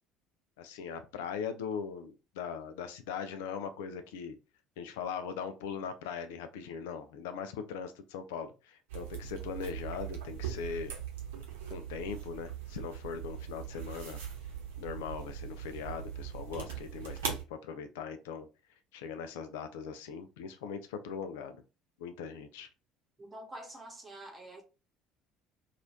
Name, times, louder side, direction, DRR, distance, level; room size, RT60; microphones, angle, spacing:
voice 1, 0.6-4.4 4.8-10.9 11.7-14.2 14.8-18.5 18.9-21.6 22.0-22.7, left 6 dB, 65° left, 0.3 m, -40 dB
sound 1, 8.9-17.4, right 8 dB, 70° right, 0.8 m, -40 dB
voice 2, 23.2-24.6, right 1 dB, 20° right, 1.1 m, -46 dB
3.0 x 2.4 x 2.7 m
figure-of-eight pair, 60°, 0 cm